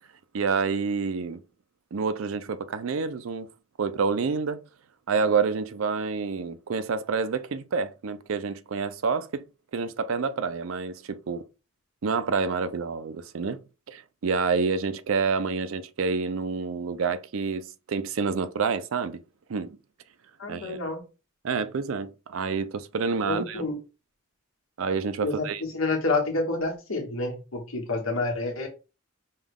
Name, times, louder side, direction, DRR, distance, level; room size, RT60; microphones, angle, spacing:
voice 1, 0.3-1.4 1.9-3.5 3.8-4.6 5.1-9.4 9.7-11.4 12.0-13.6 13.9-19.2 19.5-19.8 20.5-20.8 21.4-23.6 24.8-25.6, right 5 dB, 75° right, 0.5 m, -28 dB
voice 2, 20.4-21.0 23.2-23.8 25.2-28.7, left 3 dB, 85° left, 1.4 m, -28 dB
5.3 x 2.3 x 3.5 m
head